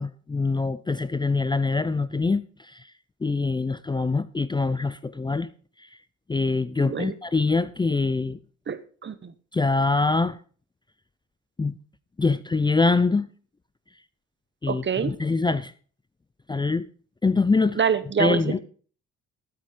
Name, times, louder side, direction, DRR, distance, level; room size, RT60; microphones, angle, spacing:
voice 1, 0.0-2.4 2.7-2.8 3.2-5.5 6.3-8.4 9.5-10.4 11.6-11.7 12.2-13.3 14.6-15.7 16.5-16.9 17.2-17.8 18.2-18.6, left 3 dB, 15° left, 0.5 m, -24 dB
voice 2, 6.8-7.1 8.7-9.3 14.7-15.1 17.8-18.6, right 7 dB, 40° right, 1.2 m, -26 dB
13.0 x 8.5 x 5.1 m
cardioid pair, 90°, 30 cm